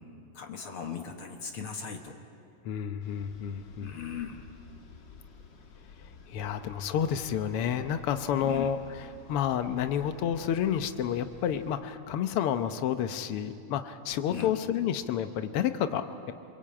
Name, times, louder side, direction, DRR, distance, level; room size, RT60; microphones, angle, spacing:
voice 1, 0.3-2.2 3.8-4.5 8.4-8.7 14.3-14.5, left 7 dB, 55° left, 5 dB, 1.6 m, -38 dB
voice 2, 2.6-4.0 6.3-16.3, left 9 dB, 80° left, 9 dB, 1.3 m, -30 dB
sound 1, 3.0-11.8, left 4 dB, 40° left, 2.0 m, -51 dB
28.0 x 22.5 x 8.8 m, 2.5 s
omnidirectional pair, 3.7 m